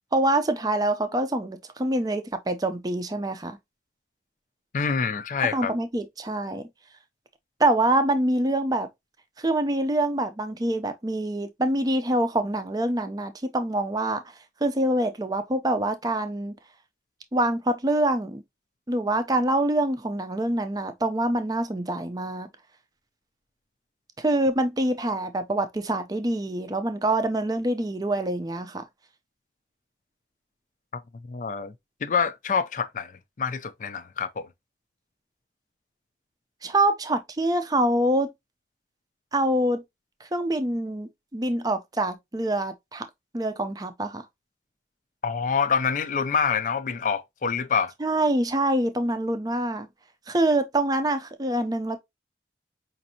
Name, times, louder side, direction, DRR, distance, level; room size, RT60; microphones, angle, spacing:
voice 1, 0.1-3.6 5.5-6.7 7.6-8.9 9.4-14.2 14.6-16.5 17.3-18.4 18.9-22.5 24.2-28.8 36.6-38.3 39.3-39.8 40.2-43.1 43.3-44.2 48.0-49.9 50.3-52.0, right 1 dB, 20° right, 0.5 m, -25 dB
voice 2, 4.7-5.7 31.3-31.7 32.0-33.1 33.4-34.5 45.2-47.9, left 6 dB, 45° left, 0.4 m, -26 dB
5.2 x 2.6 x 2.7 m
head